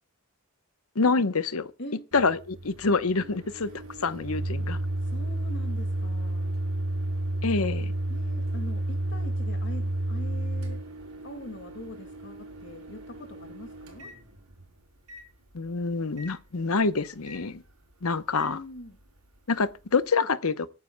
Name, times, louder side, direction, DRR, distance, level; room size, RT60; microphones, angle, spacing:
voice 1, 0.9-1.7 2.1-3.7 4.0-4.8 7.4-7.9 15.5-17.6 18.0-18.6 19.5-20.7, left 4 dB, 75° left, 0.9 m, -26 dB
Microwave oven, 2.1-14.7 15.1-15.2 16.2-16.3 17.3-17.4 18.3-18.5, right 1 dB, 85° right, 4.3 m, -32 dB
voice 2, 5.0-6.6 8.1-10.8 11.2-14.1 18.5-19.0 20.2-20.3, left 1 dB, 55° left, 2.0 m, -43 dB
25.5 x 9.7 x 2.2 m
head